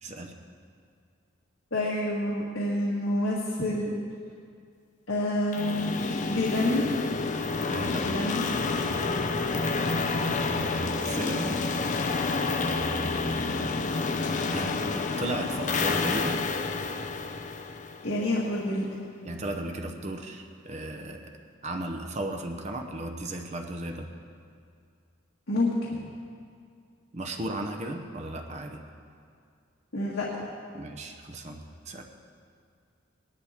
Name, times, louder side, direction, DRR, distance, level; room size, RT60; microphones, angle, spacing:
voice 1, 0.0-0.3 7.7-8.0 8.8-9.2 10.2-11.6 12.4-13.7 14.5-16.4 19.2-21.3 21.6-24.1 27.1-28.8 30.7-31.6 31.9-32.0, right 1 dB, 35° right, 3 dB, 0.8 m, -35 dB
voice 2, 1.7-3.9 5.1-5.9 6.3-6.8 7.9-8.4 18.0-18.8 25.5-25.7 26.0-26.1 29.9-30.3, left 1 dB, 80° left, -5 dB, 1.6 m, -28 dB
sound 1, 5.5-18.4, left 3 dB, 40° left, 0.5 m, -29 dB
18.5 x 11.0 x 3.6 m, 2.3 s
head